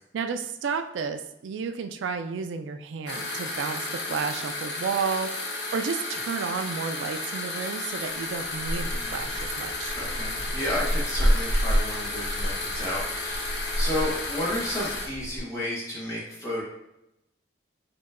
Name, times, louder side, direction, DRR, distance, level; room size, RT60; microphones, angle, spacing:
voice 1, 0.1-9.9, right 5 dB, 80° right, 8 dB, 0.3 m, -32 dB
sound 1, 3.1-15.1, left 2 dB, 60° left, 0.9 m, -33 dB
sound 2, 8.1-15.4, equal, 60° right, 1.5 m, -29 dB
voice 2, 8.8-9.2 9.9-16.6, left 1 dB, 15° left, -6 dB, 1.3 m, -32 dB
4.4 x 3.0 x 2.5 m, 0.86 s
head